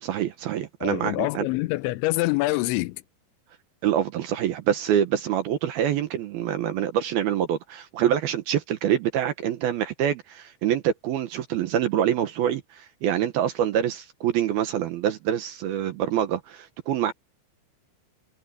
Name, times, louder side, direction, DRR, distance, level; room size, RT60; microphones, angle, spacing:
voice 1, 0.0-1.5 3.8-17.1, right 10 dB, 70° right, 2.6 m, -25 dB
voice 2, 0.8-3.0, left 20 dB, 85° left, 3.0 m, -25 dB
omnidirectional pair, 5.3 m